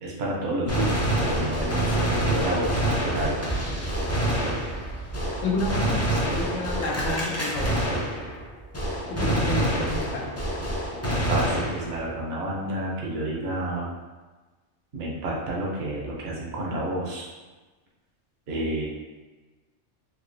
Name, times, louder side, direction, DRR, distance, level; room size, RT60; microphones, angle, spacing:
voice 1, 0.0-3.4 11.3-13.9 14.9-17.3 18.5-18.8, right 1 dB, 60° right, -3 dB, 1.0 m, -30 dB
Gunshot gunfire, 0.7-8.5 8.7-12.1, right 1 dB, 25° left, 0.3 m, -26 dB
voice 2, 5.4-7.9 9.1-10.2, left 2 dB, 90° left, 0 dB, 1.0 m, -30 dB
3.7 x 2.8 x 2.6 m, 1.3 s
omnidirectional pair, 1.3 m